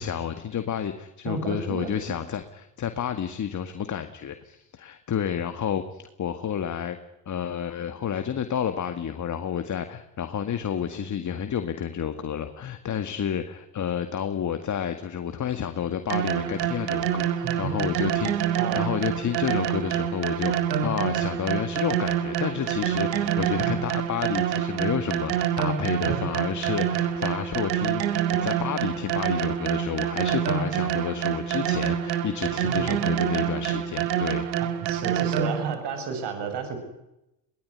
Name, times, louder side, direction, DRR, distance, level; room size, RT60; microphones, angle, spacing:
voice 1, 0.0-2.4 2.8-7.0 7.3-17.3 17.6-20.5 20.8-34.5, left 8 dB, 35° left, 8 dB, 2.0 m, -30 dB
voice 2, 1.3-1.9 17.4-18.1 18.6-19.0 23.6-23.8 26.0-26.3 32.6-33.0 34.8-36.8, right 5 dB, 55° right, 7 dB, 7.4 m, -32 dB
sound 1, 16.1-35.7, right 10 dB, 85° right, 2.3 m, -26 dB
22.5 x 19.5 x 9.9 m, 0.90 s
hypercardioid pair, 75°, 49 cm